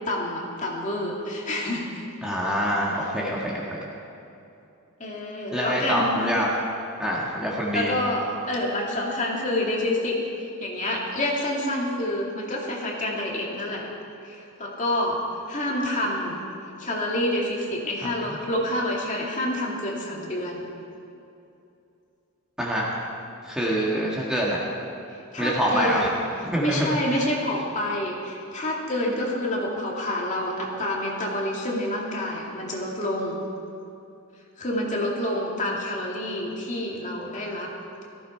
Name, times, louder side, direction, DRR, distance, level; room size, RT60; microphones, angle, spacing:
voice 1, 0.1-2.0 5.0-6.2 7.7-13.8 14.2-16.4 16.8-20.6 25.3-26.1 26.6-33.4 34.6-37.7, left 1 dB, 35° left, -2 dB, 2.4 m, -28 dB
voice 2, 2.2-3.8 5.5-6.5 7.0-7.9 18.0-18.1 22.6-22.9 23.4-24.6 25.4-26.1 26.5-27.2, equal, 5° right, -5 dB, 1.7 m, -25 dB
17.5 x 15.0 x 4.5 m, 2.7 s
head